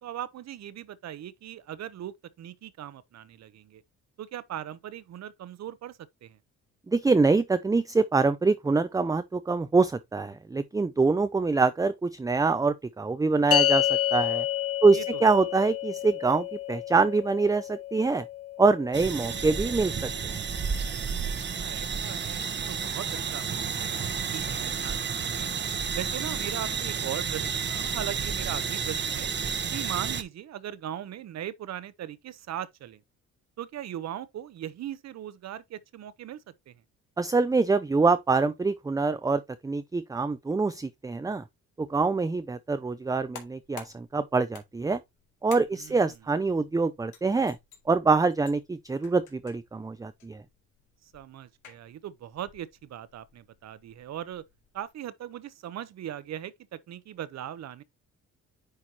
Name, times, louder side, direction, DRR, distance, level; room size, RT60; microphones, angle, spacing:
voice 1, 0.0-3.8 4.2-6.4 14.9-15.2 21.1-25.5 26.0-29.3 29.7-33.0 33.6-36.8 45.7-46.2 51.0-54.4 54.7-57.8, right 11 dB, 60° right, 0.8 m, -39 dB
voice 2, 6.9-14.5 14.8-18.2 18.6-20.4 37.2-41.4 41.8-45.0 45.4-47.6 47.9-50.4, right 4 dB, 10° right, 0.5 m, -25 dB
sound 1, 13.5-20.0, left 13 dB, 50° left, 0.5 m, -30 dB
sound 2, 18.9-30.2, right 6 dB, 35° right, 0.9 m, -31 dB
sound 3, 43.1-54.9, left 8 dB, 85° left, 2.3 m, -52 dB
9.7 x 4.5 x 2.8 m
cardioid pair, 90°, 30 cm